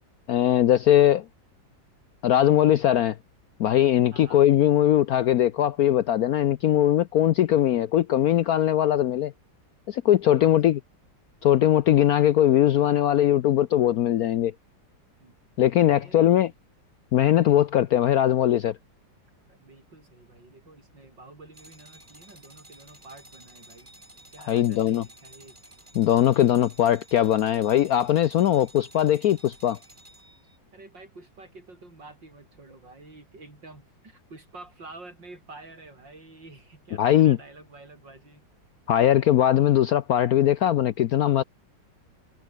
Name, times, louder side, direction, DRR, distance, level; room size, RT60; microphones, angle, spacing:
voice 1, 0.3-1.2 2.2-3.2 3.6-9.3 9.9-10.8 11.4-14.5 15.6-16.5 17.1-18.7 24.5-25.0 26.0-29.8 37.0-37.4 38.9-41.4, left 11 dB, 65° left, 0.9 m, -20 dB
voice 2, 4.1-4.4 10.2-10.8 15.2-16.5 19.5-23.9 24.3-25.6 30.7-38.5, right 2 dB, 65° right, 6.9 m, -49 dB
sound 1, 21.5-30.6, right 1 dB, 25° right, 6.8 m, -52 dB
omnidirectional pair, 2.1 m